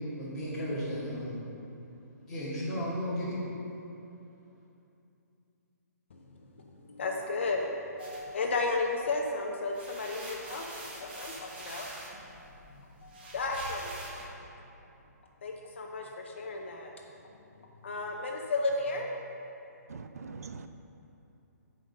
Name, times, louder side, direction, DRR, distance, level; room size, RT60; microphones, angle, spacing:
voice 1, 0.1-1.4 2.3-3.4, equal, 5° left, -12 dB, 1.9 m, -34 dB
voice 2, 6.1-14.3 15.4-16.9 17.8-19.1, left 3 dB, 45° left, 1 dB, 0.6 m, -34 dB
sound 1, 8.0-9.2 9.6-14.3, right 1 dB, 35° right, 1.2 m, -45 dB
voice 3, 19.9-20.7, right 4 dB, 60° right, 9 dB, 0.4 m, -42 dB
7.6 x 5.2 x 6.4 m, 2.8 s
hypercardioid pair, 175°, 9 cm